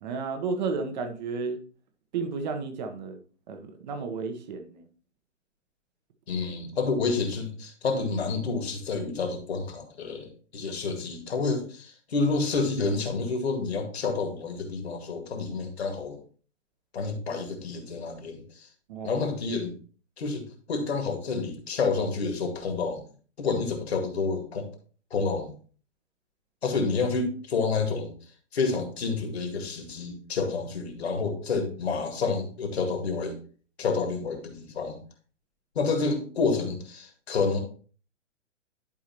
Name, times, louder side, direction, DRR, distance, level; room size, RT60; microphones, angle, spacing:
voice 1, 0.0-1.6 2.1-3.2 3.5-4.9 18.9-19.2, right 4 dB, 35° right, 8 dB, 1.2 m, -32 dB
voice 2, 6.3-16.2 16.9-18.7 19.0-19.7 20.2-23.0 23.4-24.7 25.1-25.5 26.6-28.1 28.5-33.4 33.8-35.0 35.8-37.6, left 4 dB, 60° left, 4 dB, 2.1 m, -29 dB
11.0 x 4.8 x 3.0 m, 0.40 s
figure-of-eight pair, 125°, 37 cm